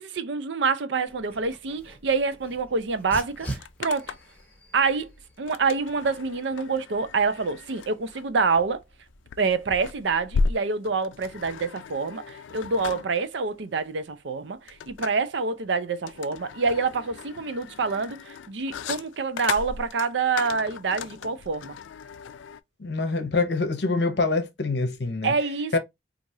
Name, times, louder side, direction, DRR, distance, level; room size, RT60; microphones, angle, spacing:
voice 1, 0.0-4.1 4.7-5.1 5.4-8.8 9.4-21.8 25.2-25.8, right 4 dB, 75° right, 0.5 m, -27 dB
Dog, 1.1-10.1, right 1 dB, 10° left, 1.1 m, -45 dB
sound 1, 2.8-2.9 3.1-4.4 5.5-22.6, left 4 dB, 90° left, 0.4 m, -35 dB
voice 2, 22.8-25.3 25.7-25.8, left 3 dB, 65° left, 0.8 m, -25 dB
4.6 x 2.5 x 2.6 m
head